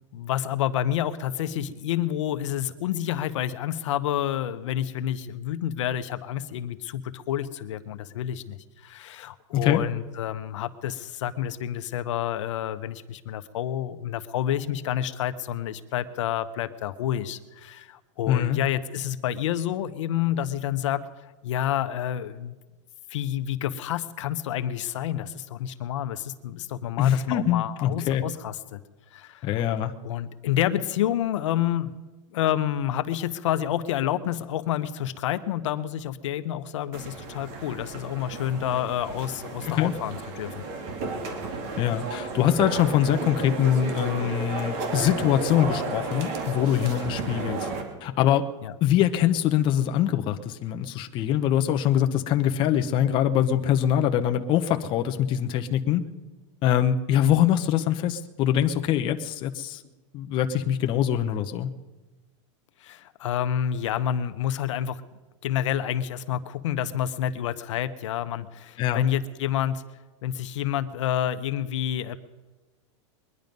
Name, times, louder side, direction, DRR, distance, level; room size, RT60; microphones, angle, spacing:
voice 1, 0.1-21.0 21.4-22.6 23.1-28.8 29.1-29.5 30.0-31.9 32.3-40.6 48.6-48.7 62.8-65.0 65.4-69.8 70.2-72.2, left 11 dB, 75° left, 11 dB, 0.9 m, -29 dB
voice 2, 9.5-9.8 18.3-18.6 27.0-28.2 29.4-29.9 39.7-39.9 41.8-47.7 48.0-48.5 48.8-56.1 56.6-59.8 60.1-61.7 68.8-69.0, left 10 dB, 30° left, 6 dB, 0.8 m, -23 dB
sound 1, 36.9-47.8, right 3 dB, 45° right, 2.4 m, -33 dB
22.0 x 10.5 x 5.3 m, 1.2 s
supercardioid pair, 150°, 16 cm